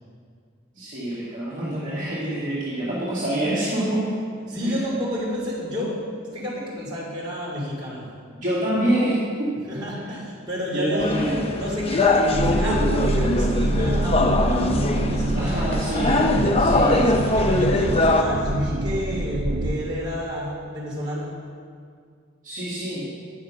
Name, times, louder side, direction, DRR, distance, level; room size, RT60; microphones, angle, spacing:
voice 1, 0.7-4.1 4.6-4.7 8.3-9.6 10.7-11.4 15.3-16.3 16.6-17.2 22.4-23.1, right 1 dB, 40° right, -10 dB, 2.3 m, -26 dB
voice 2, 4.5-6.0 6.3-8.0 9.7-11.2 11.5-15.8 16.8-21.3, equal, 20° right, -7 dB, 3.0 m, -30 dB
sound 1, 11.0-18.2, left 2 dB, 30° left, 0.5 m, -22 dB
sound 2, 12.3-19.8, right 1 dB, 80° right, 0.8 m, -25 dB
9.7 x 6.4 x 6.3 m, 2.1 s
head